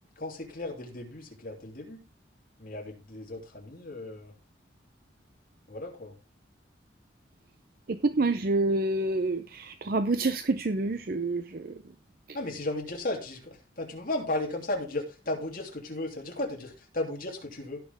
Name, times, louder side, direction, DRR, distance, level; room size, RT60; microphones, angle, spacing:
voice 1, 0.2-2.0 2.6-4.3 5.7-6.1 12.3-17.8, left 2 dB, 50° left, 3.1 m, -35 dB
voice 2, 8.0-11.4, right 2 dB, 55° right, 0.6 m, -27 dB
17.0 x 6.0 x 3.6 m
head